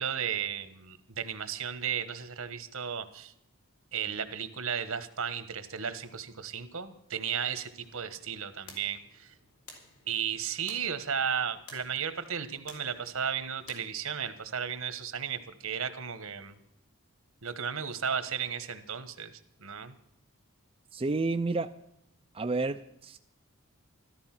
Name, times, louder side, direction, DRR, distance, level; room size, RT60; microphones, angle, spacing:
voice 1, 0.0-3.3 3.9-9.3 10.1-16.6 17.4-19.3 19.6-19.9, right 7 dB, 70° right, 11 dB, 1.3 m, -34 dB
sound 1, 7.8-13.9, left 3 dB, 80° left, 4.2 m, -54 dB
voice 2, 20.9-21.7 22.3-23.2, right 3 dB, 25° right, 6 dB, 0.5 m, -30 dB
14.0 x 13.5 x 5.9 m, 0.74 s
head